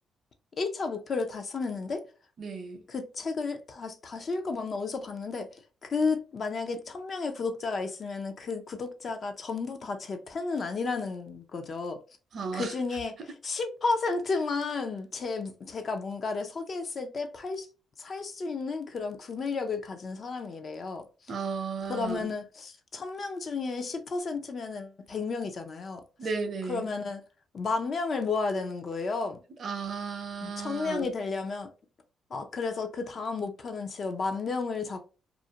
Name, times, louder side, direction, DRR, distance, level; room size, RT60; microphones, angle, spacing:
voice 1, 0.6-2.0 2.9-12.0 12.5-17.7 18.0-21.1 21.9-26.0 26.7-27.2 27.5-29.4 30.4-31.7 32.3-35.1, left 4 dB, 45° left, 0.5 m, -32 dB
voice 2, 2.4-2.8 12.3-12.7 21.3-22.3 26.2-26.9 29.6-31.1, right 5 dB, 55° right, 0.6 m, -34 dB
2.5 x 2.1 x 2.7 m
cardioid pair, 90°, 0 cm